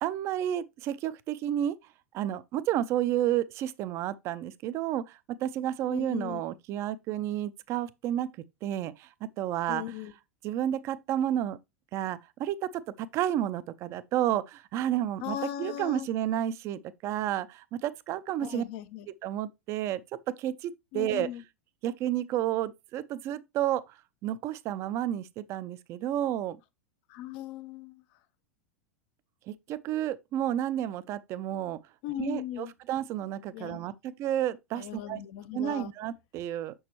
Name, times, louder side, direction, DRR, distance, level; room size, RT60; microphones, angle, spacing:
voice 1, 0.0-1.8 2.1-8.3 8.6-9.1 9.4-9.8 10.4-11.6 11.9-18.6 19.1-20.0 20.4-21.3 21.8-24.0 24.2-26.6 29.5-31.8 32.2-35.2 35.5-36.7, right 11 dB, 40° right, 0.6 m, -31 dB
voice 2, 5.9-6.4 9.7-10.1 15.2-16.1 18.4-19.1 20.9-21.4 27.1-28.0 32.0-32.7 33.5-33.8 34.8-35.9, left 12 dB, 50° left, 0.7 m, -38 dB
6.6 x 6.3 x 3.0 m
figure-of-eight pair, 90°, 7 cm